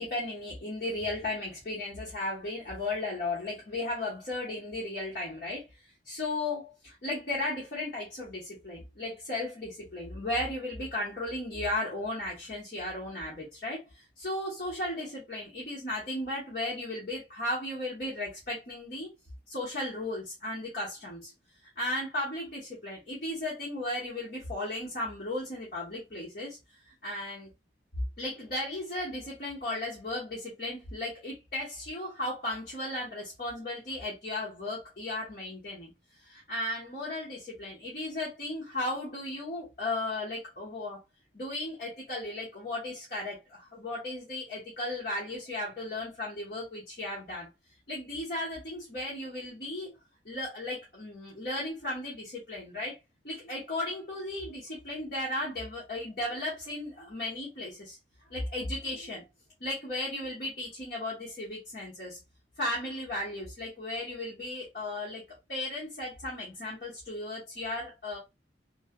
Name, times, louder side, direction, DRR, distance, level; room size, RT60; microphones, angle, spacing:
voice 1, 0.0-5.6 6.0-19.1 19.5-21.3 21.8-26.6 26.9-27.5 28.2-35.9 36.2-41.0 41.3-47.5 47.9-49.9 50.2-53.0 53.2-58.0 58.3-59.2 59.6-62.2 62.6-65.2 65.5-68.2, left 1 dB, 50° left, 1.0 m, -35 dB
3.1 x 2.0 x 2.2 m
head